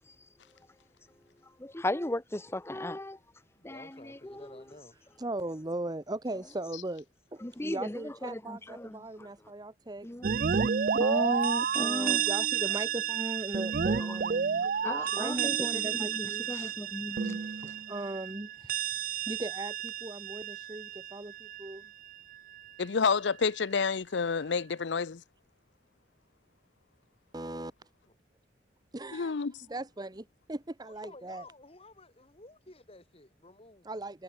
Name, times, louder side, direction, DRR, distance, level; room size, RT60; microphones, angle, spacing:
voice 1, 1.6-3.2 3.6-4.5 7.4-9.0 10.0-10.2 10.9-12.2 14.8-17.4, left 1 dB, 15° left, 0.9 m, -36 dB
voice 2, 3.6-5.2 28.1-28.2 30.8-33.9, left 2 dB, 30° left, 2.6 m, -53 dB
voice 3, 5.2-7.0 7.3-10.1 11.8-14.7 15.1-16.5 17.3-21.9 27.3-27.7 28.9-29.3 29.7-31.4 33.8-34.2, right 2 dB, 20° right, 0.9 m, -39 dB
sound 1, 10.2-21.8, right 7 dB, 50° right, 0.5 m, -31 dB
voice 4, 22.8-25.2 29.1-29.5, left 5 dB, 70° left, 0.6 m, -29 dB
head